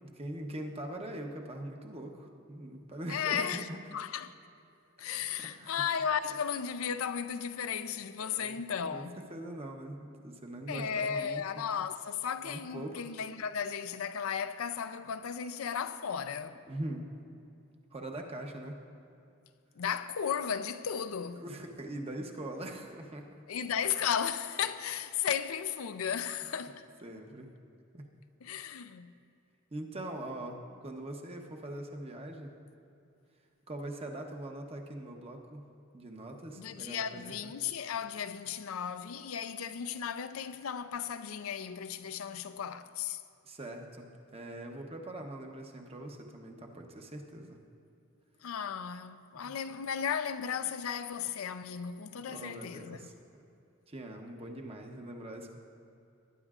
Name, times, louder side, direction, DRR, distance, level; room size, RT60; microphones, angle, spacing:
voice 1, 0.1-3.8 5.4-5.7 8.2-8.6 8.9-11.4 12.4-13.1 16.7-17.0 17.9-18.8 21.3-23.3 26.4-26.6 27.0-27.5 27.9-28.0 29.7-32.5 33.7-35.6 35.9-37.5 43.4-47.6 52.3-53.1 53.9-55.6, right 1 dB, 30° right, 0.9 m, -42 dB
voice 2, 3.1-4.3 5.0-9.2 10.7-16.6 19.8-21.4 23.5-26.9 28.4-29.1 36.6-43.2 48.4-53.0, left 7 dB, 90° left, 0.5 m, -35 dB
19.5 x 10.0 x 2.4 m
head